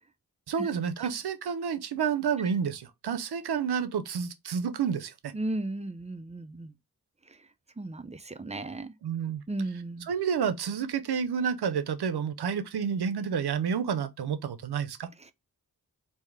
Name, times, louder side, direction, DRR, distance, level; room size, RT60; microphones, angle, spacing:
voice 1, 0.5-5.3 9.0-9.4 10.1-15.1, right 7 dB, 80° right, 0.6 m, -30 dB
voice 2, 5.3-6.7 7.3-7.4 7.8-8.9 9.5-10.1 15.2-15.3, right 2 dB, 20° right, 0.5 m, -35 dB
3.5 x 2.7 x 3.2 m
cardioid pair, 45°, 38 cm